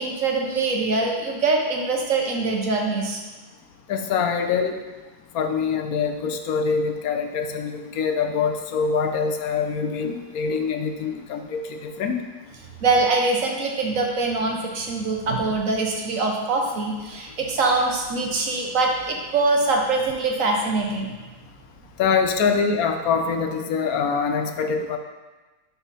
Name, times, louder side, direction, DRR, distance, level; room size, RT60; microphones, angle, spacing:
voice 1, 0.0-3.2 12.8-21.1, right 3 dB, 60° right, 1 dB, 1.3 m, -23 dB
voice 2, 3.9-4.8 5.3-12.2 22.0-25.0, left 5 dB, 75° left, 5 dB, 1.1 m, -24 dB
10.0 x 4.1 x 4.1 m, 1.2 s
omnidirectional pair, 1.6 m